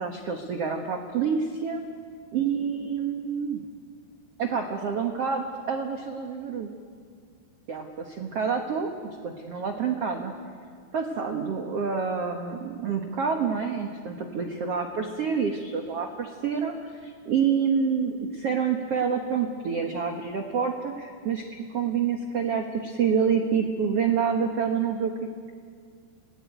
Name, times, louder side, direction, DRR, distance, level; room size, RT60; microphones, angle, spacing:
voice 1, 0.0-1.8 2.3-3.6 4.4-6.7 7.7-10.3 10.9-25.3, right 6 dB, 80° right, 4 dB, 1.3 m, -28 dB
28.0 x 19.5 x 9.3 m, 2.1 s
omnidirectional pair, 5.0 m